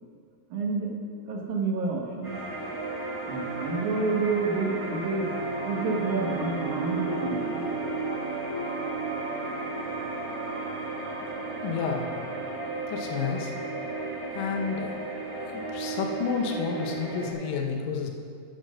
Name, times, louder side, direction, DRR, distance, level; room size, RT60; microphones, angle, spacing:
voice 1, 0.5-0.9 1.3-2.3 3.3-5.3 5.7-7.7, right 3 dB, 65° right, -2 dB, 2.4 m, -29 dB
sound 1, 0.8-3.7 5.2-16.4, right 4 dB, 85° right, 3.0 m, -42 dB
sound 2, 2.2-17.3, right 3 dB, 30° right, 0.6 m, -34 dB
voice 2, 11.6-12.1 12.9-13.5 14.3-14.9 15.5-18.1, left 6 dB, 75° left, 2 dB, 2.5 m, -30 dB
12.5 x 4.4 x 6.3 m, 2.2 s
omnidirectional pair, 4.1 m